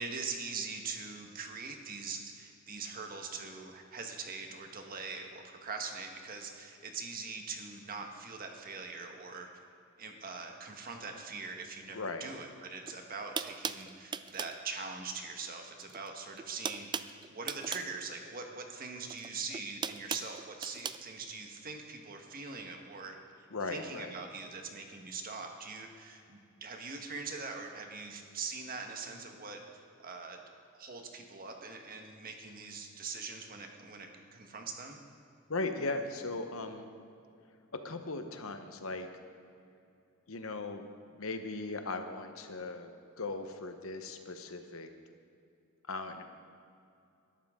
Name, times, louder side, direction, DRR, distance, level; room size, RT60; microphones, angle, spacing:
voice 1, 0.0-9.5 10.0-29.6 30.0-30.4 30.7-35.0, right 4 dB, 45° right, 3 dB, 1.5 m, -42 dB
voice 2, 11.9-12.3 23.5-24.1 35.5-36.8 37.8-39.1 40.3-40.8 41.1-42.9 43.2-44.9 45.9-46.2, left 3 dB, 70° left, 7 dB, 1.1 m, -38 dB
sound 1, 12.8-12.9 13.4-14.6 15.8-16.1 16.3-17.9 19.1-21.0, right 6 dB, 20° right, 0.3 m, -38 dB
20.5 x 11.5 x 3.8 m, 2.6 s
head